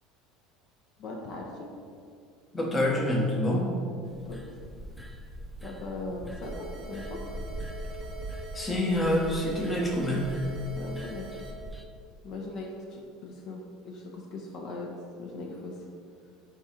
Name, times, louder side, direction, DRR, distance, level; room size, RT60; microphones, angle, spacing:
voice 1, 1.0-1.7 4.3-4.4 5.6-7.3 10.7-11.3 12.2-14.9 15.2-15.7, left 2 dB, 55° left, -1 dB, 0.6 m, -39 dB
voice 2, 2.5-3.7 8.5-10.3, left 1 dB, 20° left, -1 dB, 0.8 m, -26 dB
sound 1, 4.1-11.9, right 1 dB, ahead, 0.3 m, -42 dB
sound 2, 6.4-11.5, right 3 dB, 30° right, 0.7 m, -44 dB
4.6 x 2.4 x 4.2 m, 2.3 s
supercardioid pair, 100°, 0 cm